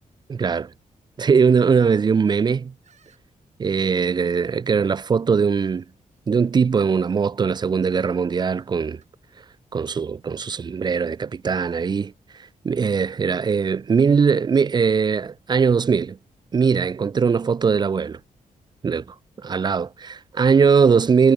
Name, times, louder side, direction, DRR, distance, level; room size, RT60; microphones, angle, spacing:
voice 1, 0.3-0.7 1.2-2.7 3.6-5.8 6.3-9.0 9.7-12.1 12.6-16.2 16.5-18.2 18.8-21.3, right 5 dB, 30° right, 0.5 m, -20 dB
sound 1, 2.8-3.2 4.0-4.1 5.4-5.7 6.1-6.2 7.1-8.0 8.3-8.5 8.8-9.1, right 7 dB, 55° right, 6.7 m, -60 dB
wide cardioid pair, 170°, 14 cm